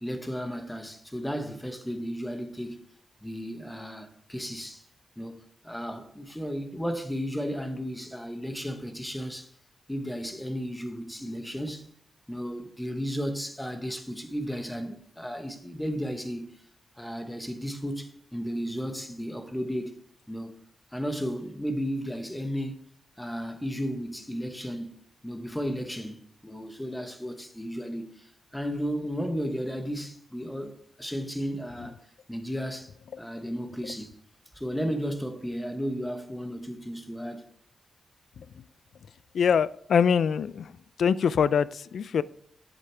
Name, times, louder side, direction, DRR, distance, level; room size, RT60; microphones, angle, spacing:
voice 1, 0.0-2.8 3.2-4.9 5.2-9.5 9.9-11.9 12.3-16.6 17.0-19.9 20.3-20.5 20.9-22.7 23.2-24.9 25.2-32.0 32.3-32.9 33.2-34.1 34.5-37.5, equal, 5° left, 1.0 m, -34 dB
voice 2, 39.3-40.7 41.0-42.2, left 7 dB, 70° left, 0.3 m, -23 dB
10.0 x 7.8 x 3.4 m
wide cardioid pair, 125°, 0 cm